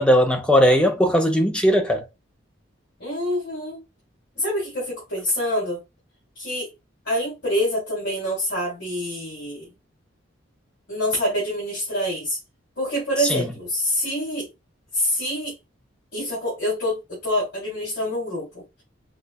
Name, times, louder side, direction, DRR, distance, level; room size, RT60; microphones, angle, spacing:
voice 1, 0.0-2.1 13.2-13.5, equal, 5° left, 0.5 m, -18 dB
voice 2, 3.0-3.8 4.4-5.8 6.4-6.7 7.1-9.7 10.9-12.4 12.8-14.5 14.9-15.5 16.1-18.6, equal, 60° left, 2.1 m, -26 dB
5.0 x 2.2 x 2.3 m
head